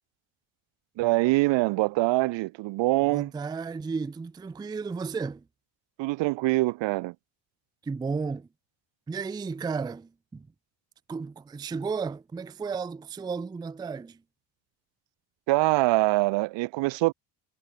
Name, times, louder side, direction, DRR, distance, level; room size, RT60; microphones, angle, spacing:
voice 1, 1.0-3.3 6.0-7.1 15.5-17.1, right 21 dB, 65° right, 0.7 m, -24 dB
voice 2, 3.1-5.4 7.8-8.5 9.1-10.5 11.1-14.2, right 5 dB, 10° right, 0.4 m, -33 dB
cardioid pair, 105°, 47 cm